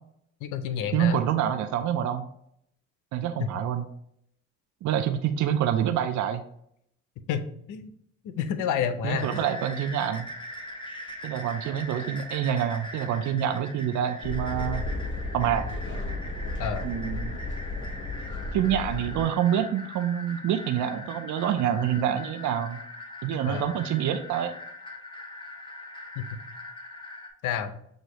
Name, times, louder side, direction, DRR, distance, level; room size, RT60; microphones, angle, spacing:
voice 1, 0.4-1.2 3.4-3.5 7.3-7.9 8.2-9.3 16.6-16.9 23.5-23.7 26.2-26.4 27.4-27.8, left 8 dB, 90° left, 10 dB, 0.6 m, -29 dB
voice 2, 0.9-2.2 3.1-3.8 4.8-6.4 9.0-10.3 11.2-14.8 15.3-15.6 16.8-17.4 18.5-22.8 23.2-24.5, right 9 dB, 70° right, 8 dB, 0.5 m, -27 dB
sound 1, 9.1-27.3, left 1 dB, 15° left, 0.9 m, -41 dB
sound 2, 14.2-19.2, left 2 dB, 40° left, 1.0 m, -33 dB
6.3 x 2.6 x 3.0 m, 0.70 s
cardioid pair, 90°, 30 cm